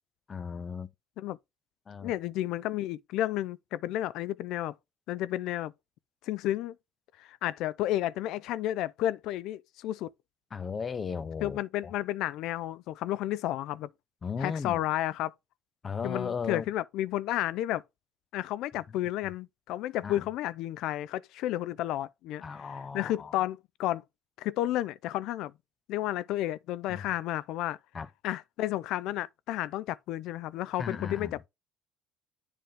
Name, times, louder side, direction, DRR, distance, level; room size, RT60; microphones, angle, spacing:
voice 1, 0.3-0.9 1.9-2.1 10.5-11.9 14.2-14.8 15.8-16.6 20.0-20.2 22.4-23.3 26.9-27.0 27.9-28.1 30.8-31.4, left 6 dB, 35° left, 0.7 m, -36 dB
voice 2, 2.0-4.7 5.1-5.7 6.2-6.8 7.2-10.1 11.4-13.9 14.4-15.3 16.0-17.8 18.3-24.0 24.4-25.5 25.9-27.8 28.2-31.5, left 14 dB, 70° left, 0.4 m, -32 dB
7.7 x 3.4 x 5.2 m
supercardioid pair, 80°, 0 cm